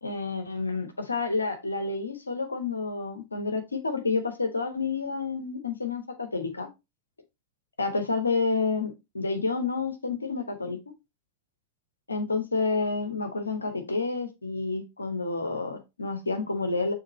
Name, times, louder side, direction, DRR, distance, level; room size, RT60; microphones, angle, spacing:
voice 1, 0.0-6.7 7.8-10.8 12.1-16.9, left 4 dB, 80° left, 1.2 m, -29 dB
6.5 x 3.6 x 4.3 m
figure-of-eight pair, 90°, 0 cm